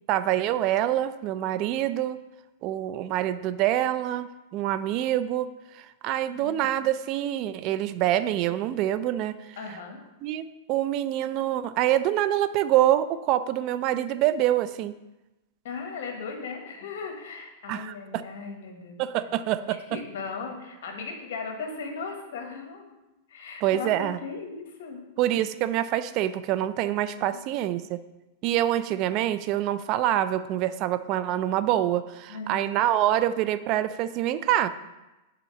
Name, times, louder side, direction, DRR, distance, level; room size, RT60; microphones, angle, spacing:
voice 1, 0.1-2.2 2.6-9.6 10.2-14.9 17.7-18.2 19.0-19.8 23.6-24.2 25.2-28.0 28.4-34.7, right 12 dB, 45° right, 14 dB, 0.3 m, -26 dB
voice 2, 6.3-6.7 9.6-10.0 15.6-19.3 19.6-22.9 23.3-25.0 27.3-27.6 32.3-32.8, left 4 dB, 70° left, 3 dB, 1.3 m, -37 dB
5.6 x 4.0 x 5.5 m, 1.0 s
hypercardioid pair, 125°, 0 cm